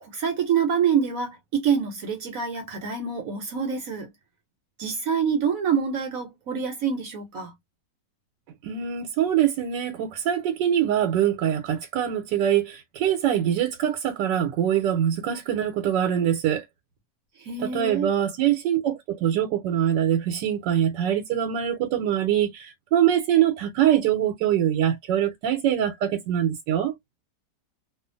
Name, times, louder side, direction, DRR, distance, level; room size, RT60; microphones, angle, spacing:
voice 1, 0.0-4.1 4.8-7.5 17.4-18.1, right 7 dB, 60° right, 0.9 m, -26 dB
voice 2, 8.6-16.6 17.6-26.9, right 10 dB, 85° right, 1.2 m, -23 dB
2.7 x 2.4 x 2.5 m
omnidirectional pair, 1.9 m